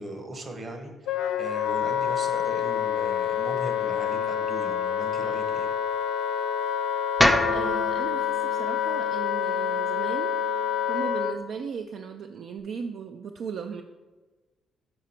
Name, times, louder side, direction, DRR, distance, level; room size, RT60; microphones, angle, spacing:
voice 1, 0.0-5.7, right 1 dB, 40° right, 4 dB, 1.1 m, -39 dB
Wind instrument woodwind instrument, 1.1-11.4, left 8 dB, 85° left, 0.5 m, -27 dB
sound 1, 7.2-11.4, left 1 dB, 5° left, 0.4 m, -29 dB
voice 2, 7.3-10.3 10.9-13.8, right 6 dB, 65° right, 6 dB, 0.3 m, -37 dB
6.1 x 4.9 x 4.3 m, 1.3 s
cardioid pair, 90°, 0 cm